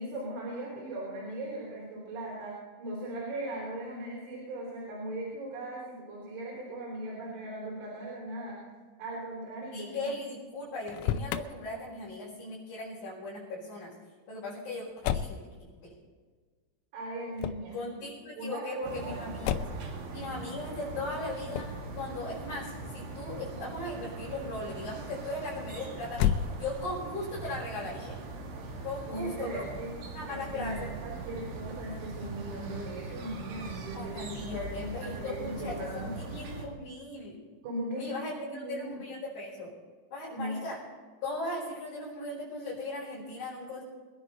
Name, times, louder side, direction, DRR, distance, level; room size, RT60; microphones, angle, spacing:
voice 1, 0.0-8.6 9.0-10.1 16.9-17.8 18.4-19.2 29.1-29.9 30.3-36.1 37.6-38.9 40.3-40.6, right 1 dB, 85° right, -4 dB, 6.6 m, -38 dB
voice 2, 9.7-13.9 14.3-15.4 15.8-15.9 17.7-19.7 20.1-21.7 22.0-26.3 26.6-28.2 28.8-29.6 30.1-30.9 33.9-37.4 37.9-39.7 40.1-40.8 41.2-43.8, left 2 dB, 40° left, -9 dB, 6.3 m, -38 dB
Motor vehicle (road), 10.8-11.5 15.0-15.4 17.4-17.7 19.4-19.9 21.5-21.8 26.1-27.0, left 9 dB, 85° left, 3.3 m, -30 dB
sound 1, 18.8-36.7, right 3 dB, 65° right, 4.5 m, -41 dB
24.5 x 10.5 x 4.2 m, 1.5 s
omnidirectional pair, 6.0 m